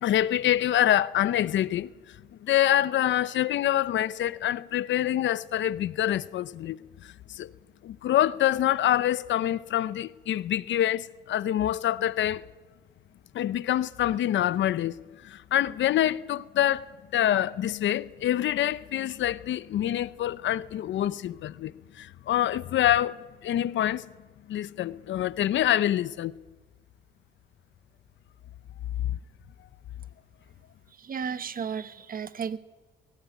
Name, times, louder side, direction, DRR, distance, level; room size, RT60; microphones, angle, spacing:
voice 1, 0.0-1.9 2.4-6.8 7.3-7.5 7.8-12.4 13.3-15.0 15.2-24.1 24.5-26.3 29.1-29.2, left 12 dB, 70° left, 0.8 m, -26 dB
voice 2, 30.9-32.6, right 6 dB, 45° right, 1.2 m, -34 dB
21.0 x 17.5 x 9.3 m
cardioid pair, 90°, 20 cm